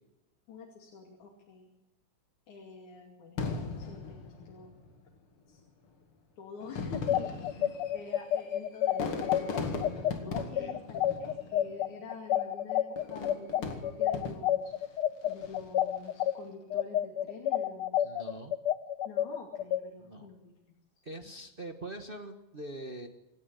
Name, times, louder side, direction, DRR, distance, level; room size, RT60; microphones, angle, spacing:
voice 1, 0.5-1.7 2.5-4.7 5.5-5.6 6.4-14.7 15.2-18.2 19.1-20.5, left 4 dB, 85° left, 1 dB, 4.0 m, -47 dB
Fireworks, 3.4-5.0 5.8-5.9 6.6-11.9 13.0-14.7 15.3-15.8, left 4 dB, 50° left, 2.8 m, -38 dB
sound 1, 6.9-16.3 16.7-19.8, left 11 dB, 70° left, 1.3 m, -29 dB
voice 2, 7.3-7.7 10.5-10.8 11.1-11.2 18.0-18.6 20.0-20.3 21.0-23.1, right 1 dB, 40° right, 5 dB, 0.7 m, -43 dB
26.5 x 10.0 x 9.8 m, 0.98 s
omnidirectional pair, 3.3 m